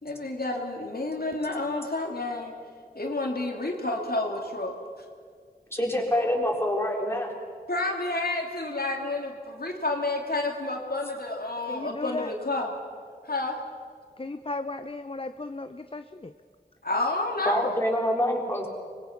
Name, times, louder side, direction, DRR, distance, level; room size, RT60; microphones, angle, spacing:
voice 1, 0.0-2.5 2.9-4.7 7.7-12.7 13.2-13.6 16.8-17.7, left 2 dB, 70° left, 1 dB, 2.7 m, -30 dB
voice 2, 5.7-7.3 17.5-18.7, equal, 15° left, -1 dB, 4.2 m, -26 dB
voice 3, 11.7-12.3 14.2-16.3, left 2 dB, 35° left, 9 dB, 0.7 m, -35 dB
25.0 x 20.5 x 5.9 m, 2.1 s
wide cardioid pair, 50°, 17 cm